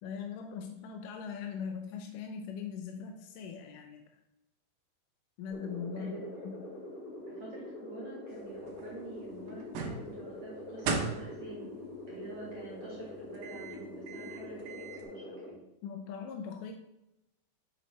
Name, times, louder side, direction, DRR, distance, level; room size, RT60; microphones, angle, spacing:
voice 1, 0.0-4.0 5.4-6.2 6.4-6.7 15.8-16.7, left 6 dB, 80° left, 4 dB, 2.0 m, -40 dB
sound 1, 5.5-15.5, left 2 dB, 60° left, 1.6 m, -44 dB
voice 2, 7.3-11.7 12.1-15.6, right 3 dB, 50° right, -5 dB, 2.8 m, -47 dB
sound 2, 8.3-15.0, right 4 dB, 80° right, 3.1 m, -41 dB
7.8 x 7.2 x 3.3 m, 0.88 s
omnidirectional pair, 4.4 m